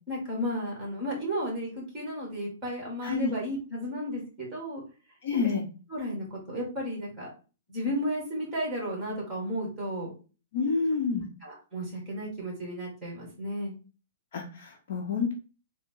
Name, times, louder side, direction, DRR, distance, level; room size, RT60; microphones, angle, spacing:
voice 1, 0.1-4.8 5.9-7.3 7.7-10.1 11.1-13.7, equal, 10° right, -2 dB, 1.7 m, -33 dB
voice 2, 5.2-5.6 10.5-11.3 14.3-15.3, left 5 dB, 50° left, 1 dB, 0.8 m, -28 dB
3.7 x 2.1 x 3.7 m, 0.34 s
hypercardioid pair, 170°, 0 cm